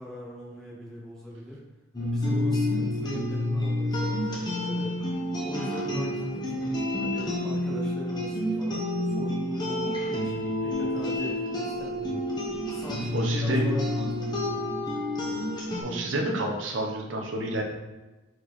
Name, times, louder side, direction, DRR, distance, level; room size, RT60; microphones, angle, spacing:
voice 1, 0.0-1.6 2.0-5.0 5.4-6.5 7.0-12.2 12.7-14.6, equal, 5° left, -7 dB, 1.7 m, -40 dB
sound 1, 1.9-15.8, left 1 dB, 20° left, 1.2 m, -29 dB
voice 2, 13.1-13.7 15.8-17.6, right 1 dB, 70° right, 1 dB, 1.1 m, -29 dB
4.9 x 4.5 x 4.2 m, 1.2 s
head